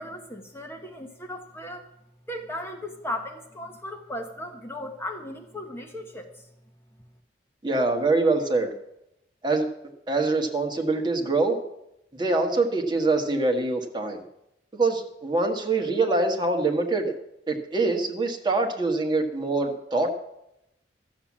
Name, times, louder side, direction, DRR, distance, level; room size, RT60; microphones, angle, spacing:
voice 1, 0.0-1.8 2.3-6.3, left 1 dB, 15° left, 3 dB, 1.1 m, -36 dB
voice 2, 7.6-8.7 9.4-9.7 10.1-11.6 12.2-14.2 14.7-17.1 17.5-20.1, right 3 dB, 25° right, 2 dB, 1.5 m, -24 dB
13.0 x 7.4 x 7.4 m, 0.84 s
head